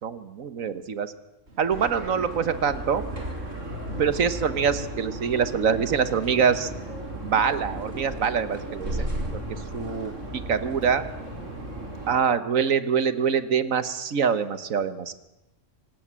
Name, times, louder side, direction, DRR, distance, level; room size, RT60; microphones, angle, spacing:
voice 1, 0.0-1.1 1.6-3.0 4.0-6.7 7.2-9.1 9.3-9.4 9.7-10.1 10.5-11.0 12.1-15.1, right 7 dB, 85° right, 13 dB, 1.7 m, -24 dB
Child speech kid speaking, 1.5-12.2, right 1 dB, 55° right, 3.0 m, -45 dB
sound 1, 1.8-12.2, right 1 dB, 70° right, 5.4 m, -35 dB
25.0 x 18.5 x 7.6 m, 0.95 s
omnidirectional pair, 1.4 m